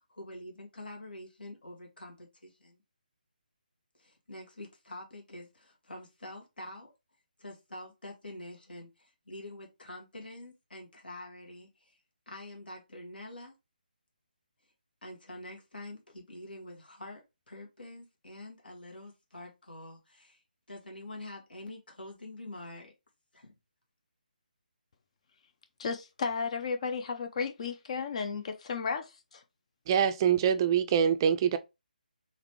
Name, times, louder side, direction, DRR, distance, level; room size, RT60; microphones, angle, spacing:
voice 1, 0.0-2.8 3.9-6.9 7.4-12.0 12.3-13.5 15.0-20.4 20.7-22.9 23.3-23.5, left 1 dB, 80° left, 1.9 m, -46 dB
voice 2, 25.8-29.4, left 5 dB, 45° left, 0.5 m, -34 dB
voice 3, 29.9-31.6, right 8 dB, 25° right, 0.4 m, -24 dB
3.9 x 3.1 x 3.0 m
figure-of-eight pair, 150°, 5 cm